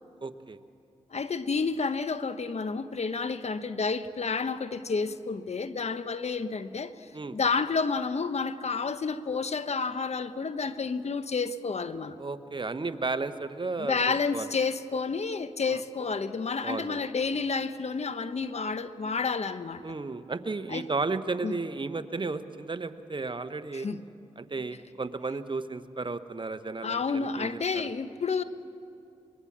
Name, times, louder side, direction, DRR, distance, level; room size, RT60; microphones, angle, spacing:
voice 1, 0.2-0.6 7.1-7.4 12.2-14.0 14.3-14.5 15.7-15.8 16.6-17.0 19.8-23.9 24.4-27.9, right 3 dB, 40° right, 1.2 m, -33 dB
voice 2, 1.1-12.2 13.9-19.8 20.7-20.8 21.4-21.5 23.7-24.0 26.8-28.4, left 4 dB, 55° left, 1.0 m, -30 dB
24.0 x 21.5 x 7.5 m
supercardioid pair, 40°, 13 cm